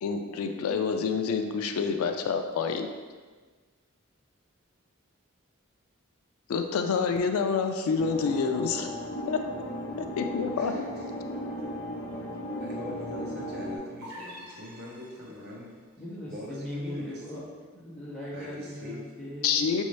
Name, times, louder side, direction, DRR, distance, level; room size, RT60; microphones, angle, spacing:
voice 1, 0.0-2.9 6.5-8.9 9.3-9.4 10.2-10.7 19.4-19.8, left 5 dB, 85° left, 6 dB, 0.3 m, -27 dB
sound 1, 8.0-13.8, equal, 60° left, 0.8 m, -36 dB
voice 2, 10.5-11.1 11.4-15.7 16.2-17.5 18.3-19.0, left 1 dB, 45° right, -4 dB, 0.8 m, -43 dB
sound 2, 14.0-15.6, equal, 85° right, 0.9 m, -46 dB
voice 3, 16.0-17.4 17.7-19.7, left 1 dB, 5° left, -11 dB, 1.3 m, -39 dB
5.2 x 2.7 x 3.1 m, 1.4 s
head